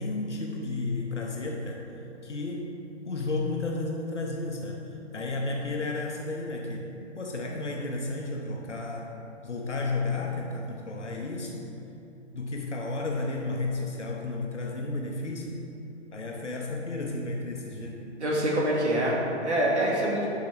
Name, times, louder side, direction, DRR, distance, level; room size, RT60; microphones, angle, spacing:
voice 1, 0.0-1.8 2.2-2.7 3.0-9.1 9.4-11.7 12.3-15.6 16.1-18.1, left 2 dB, 80° left, 0 dB, 1.1 m, -32 dB
voice 2, 18.2-20.3, right 1 dB, 75° right, -4 dB, 2.1 m, -25 dB
11.5 x 7.4 x 3.4 m, 2.8 s
figure-of-eight pair, 125°, 35 cm